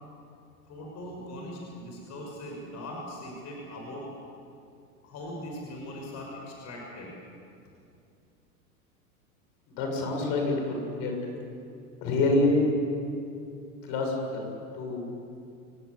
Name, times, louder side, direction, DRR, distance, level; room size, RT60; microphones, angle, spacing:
voice 1, 0.7-4.3 5.0-7.2, left 1 dB, 35° left, -1 dB, 6.3 m, -40 dB
voice 2, 9.7-11.4 12.0-12.7 13.8-14.5 14.7-15.1, left 2 dB, 50° left, 2 dB, 7.3 m, -27 dB
30.0 x 18.5 x 8.4 m, 2.5 s
hypercardioid pair, 100°, 45 cm